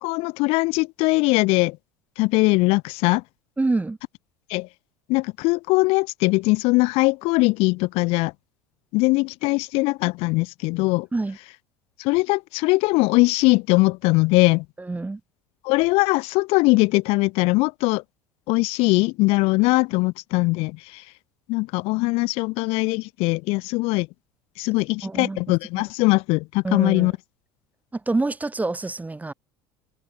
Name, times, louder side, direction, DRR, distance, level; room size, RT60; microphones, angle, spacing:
voice 1, 0.0-1.8 2.2-3.2 4.5-4.7 5.1-8.3 8.9-11.1 12.0-14.6 15.6-18.0 18.5-21.0 21.5-24.1 24.6-27.1, left 25 dB, 60° left, 0.5 m, -21 dB
voice 2, 3.6-4.0 11.1-11.4 14.8-15.2 25.0-25.4 26.6-27.1 27.9-29.3, right 3 dB, 15° right, 2.3 m, -26 dB
hypercardioid pair, 75°, 11 cm